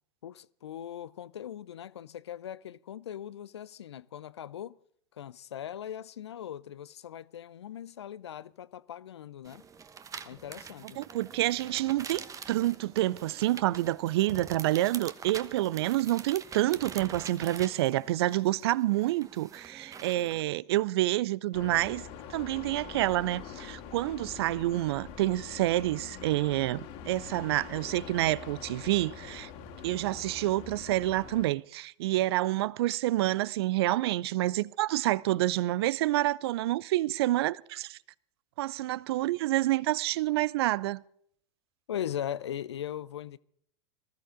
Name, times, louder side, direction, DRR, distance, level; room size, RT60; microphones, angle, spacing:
voice 1, 0.2-4.8 5.2-9.6 10.3-11.0 41.9-43.4, left 10 dB, 80° left, 0.6 m, -39 dB
sound 1, 9.4-20.4, right 6 dB, 25° right, 1.1 m, -45 dB
voice 2, 11.0-22.0 22.3-29.5 29.8-38.0 38.6-41.0, right 16 dB, 65° right, 0.5 m, -28 dB
sound 2, 21.5-31.5, left 7 dB, 55° left, 2.4 m, -44 dB
20.0 x 13.5 x 3.8 m
hypercardioid pair, 90°, 14 cm